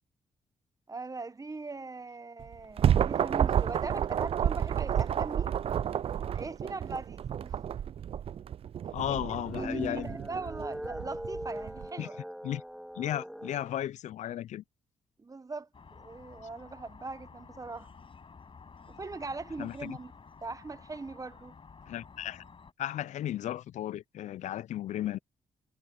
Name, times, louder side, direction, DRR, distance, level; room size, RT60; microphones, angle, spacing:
voice 1, 0.9-5.6 6.3-7.6 9.1-10.0 10.3-12.2 15.2-17.9 18.9-20.1 20.4-21.5, right 3 dB, 30° right, 1.3 m, -40 dB
sound 1, 2.4-11.9, right 9 dB, 50° right, 0.4 m, -30 dB
voice 2, 8.9-10.2 12.0-12.1 12.4-12.6 12.9-14.6 19.6-20.0 21.9-22.4 22.8-25.2, left 12 dB, 70° left, 0.5 m, -35 dB
sound 2, 9.3-13.7, equal, ahead, 2.8 m, -40 dB
sound 3, 15.7-22.7, left 5 dB, 45° left, 6.5 m, -52 dB
supercardioid pair, 55°, 12 cm